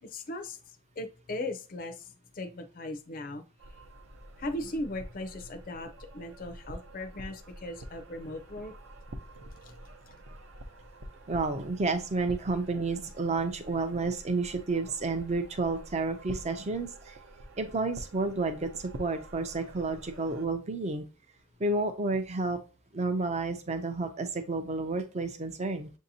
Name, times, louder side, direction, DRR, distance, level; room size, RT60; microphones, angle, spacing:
voice 1, 0.0-0.6 1.0-3.4 4.4-8.7 9.6-9.7, left 1 dB, 40° left, 5 dB, 0.5 m, -38 dB
sound 1, 3.6-20.5, right 1 dB, 65° right, 0.7 m, -47 dB
voice 2, 11.3-17.2 17.6-21.0 21.6-22.6 22.9-25.9, right 3 dB, 30° right, 7 dB, 0.4 m, -31 dB
7.1 x 2.7 x 2.7 m, 0.34 s
head